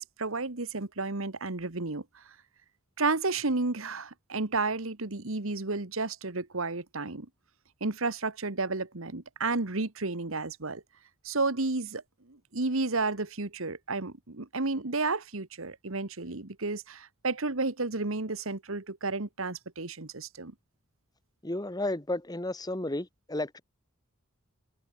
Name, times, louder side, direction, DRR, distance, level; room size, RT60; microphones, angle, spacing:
voice 1, 0.0-2.3 3.0-7.3 7.8-10.8 11.2-12.0 12.3-20.5, right 3 dB, 65° right, 1.6 m, -32 dB
voice 2, 21.4-23.6, left 1 dB, 20° left, 1.5 m, -32 dB
head